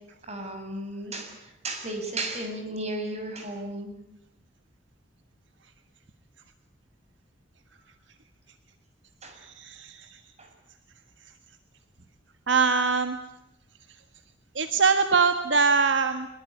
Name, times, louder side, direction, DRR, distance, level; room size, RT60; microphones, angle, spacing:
voice 1, 0.2-3.9 9.2-9.4 10.4-10.5, right 1 dB, 35° right, 4 dB, 6.9 m, -34 dB
voice 2, 9.4-10.1 12.5-13.2 14.5-16.3, right 4 dB, 75° right, 9 dB, 1.5 m, -23 dB
24.0 x 22.0 x 9.8 m, 0.84 s
head